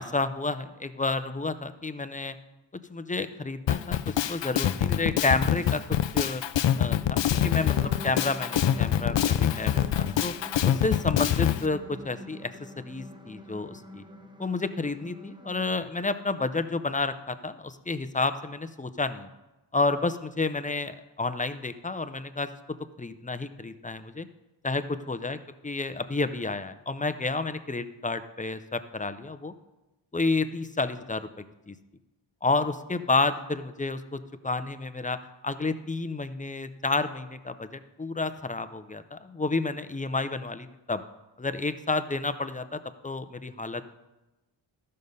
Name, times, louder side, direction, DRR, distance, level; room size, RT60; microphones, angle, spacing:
voice 1, 0.0-2.3 2.9-5.8 6.1-6.4 6.8-10.3 10.6-14.0 14.4-19.3 19.7-22.5 23.0-24.3 24.6-25.4 25.6-29.5 30.1-31.7 32.4-35.2 35.4-41.0 41.4-43.9, left 3 dB, 15° left, 11 dB, 0.5 m, -30 dB
Drum kit, 3.7-11.6, left 10 dB, 70° left, 0.5 m, -25 dB
sound 1, 7.3-15.7, equal, 10° right, 0.9 m, -44 dB
13.0 x 6.6 x 5.4 m, 1.0 s
wide cardioid pair, 110°, 46 cm